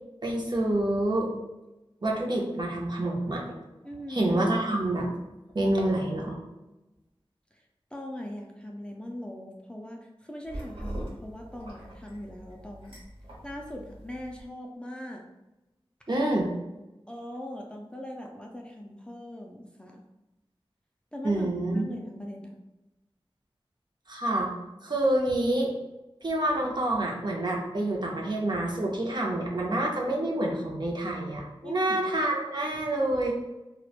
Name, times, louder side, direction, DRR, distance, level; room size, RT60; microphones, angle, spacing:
voice 1, 0.2-1.3 2.0-3.4 4.1-5.1 5.5-6.4 16.1-16.5 21.2-21.9 24.1-24.5 24.8-25.7 26.2-33.3, right 1 dB, 50° right, -1 dB, 0.6 m, -27 dB
voice 2, 3.8-4.4 7.5-7.6 7.9-13.0 13.4-15.2 16.1-16.2 17.1-20.0 21.1-22.6 31.6-32.0, left 1 dB, 10° left, 0 dB, 0.3 m, -41 dB
sound 1, 10.4-14.4, right 1 dB, 65° right, 1.1 m, -42 dB
2.9 x 2.1 x 2.4 m, 0.99 s
wide cardioid pair, 60°, 10 cm